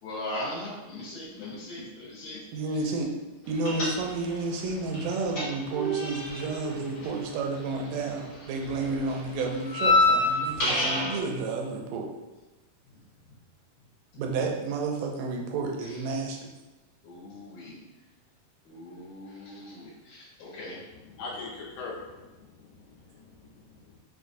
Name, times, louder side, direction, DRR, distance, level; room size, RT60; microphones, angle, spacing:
voice 1, 0.0-2.4 8.8-9.0 17.0-17.7 18.7-20.8, left 1 dB, 70° left, -9 dB, 2.3 m, -39 dB
voice 2, 2.5-3.1 3.5-12.1 14.2-16.4, right 3 dB, 80° right, 1 dB, 2.0 m, -31 dB
sound 1, 3.6-4.4 4.7-8.1 8.3-11.2, left 2 dB, 50° left, 1.7 m, -27 dB
voice 3, 20.9-24.0, left 3 dB, 90° left, -2 dB, 2.4 m, -42 dB
5.7 x 2.4 x 2.6 m, 1.1 s
omnidirectional pair, 3.8 m